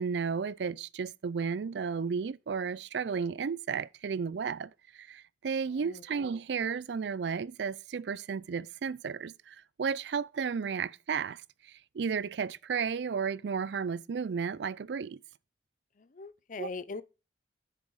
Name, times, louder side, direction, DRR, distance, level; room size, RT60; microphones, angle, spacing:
voice 1, 0.0-15.2 16.6-16.7, right 6 dB, 70° right, 0.4 m, -33 dB
voice 2, 16.0-17.0, left 3 dB, 45° left, 0.6 m, -40 dB
10.5 x 6.8 x 4.7 m
head